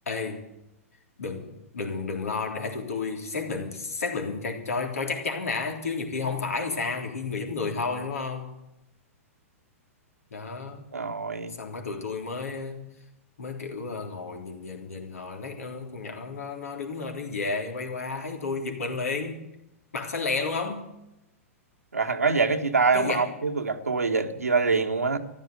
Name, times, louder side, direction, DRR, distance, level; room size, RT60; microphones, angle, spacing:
voice 1, 0.1-0.5 1.2-8.5 10.3-10.8 11.6-12.9 13.4-19.4 19.9-20.9 22.9-23.3, left 4 dB, 80° left, 3.5 m, -32 dB
voice 2, 10.9-11.5 21.9-25.2, right 4 dB, 90° right, 1.6 m, -25 dB
14.5 x 11.5 x 8.1 m
hypercardioid pair, 110°, 8 cm